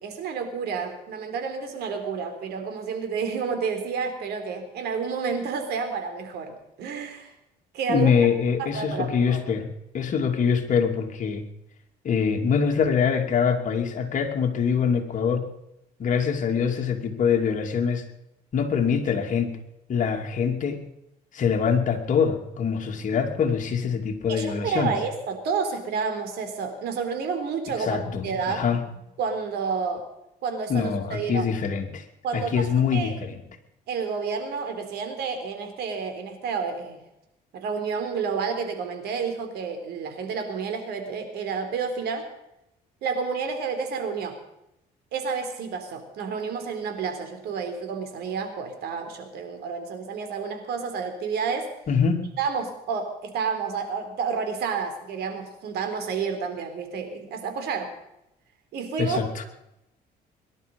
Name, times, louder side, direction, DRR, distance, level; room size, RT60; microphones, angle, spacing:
voice 1, 0.0-7.3 7.7-8.1 8.6-9.4 24.3-28.6 29.2-30.0 30.4-31.5 32.2-33.1 33.9-37.0 37.5-42.3 43.0-44.4 45.1-51.7 52.4-57.9 58.7-59.4, right 5 dB, 75° right, 6 dB, 3.8 m, -30 dB
voice 2, 7.9-9.7 9.9-11.4 12.0-15.5 16.0-18.0 18.5-19.6 19.9-20.8 21.3-25.0 27.8-28.8 30.7-32.0 32.3-33.4 51.9-52.2 59.0-59.4, left 6 dB, 50° left, 3 dB, 2.8 m, -24 dB
22.5 x 12.0 x 5.4 m, 0.86 s
cardioid pair, 110°, 17 cm